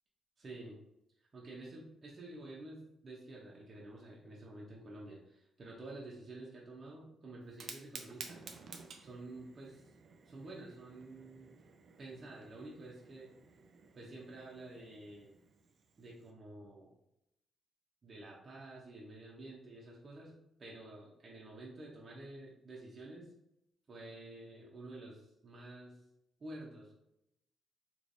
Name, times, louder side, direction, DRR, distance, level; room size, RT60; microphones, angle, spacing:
voice 1, 0.4-0.8 1.3-8.4 9.0-9.9 10.2-11.6 12.0-13.3 13.9-15.3 16.0-16.9 18.0-20.3 20.6-23.3 23.9-26.0 26.4-26.9, right 2 dB, 40° right, -5 dB, 0.8 m, -50 dB
Fire, 7.4-16.3, right 5 dB, 65° right, 0.5 m, -54 dB
3.2 x 3.0 x 2.6 m, 0.81 s
cardioid pair, 85°, 0 cm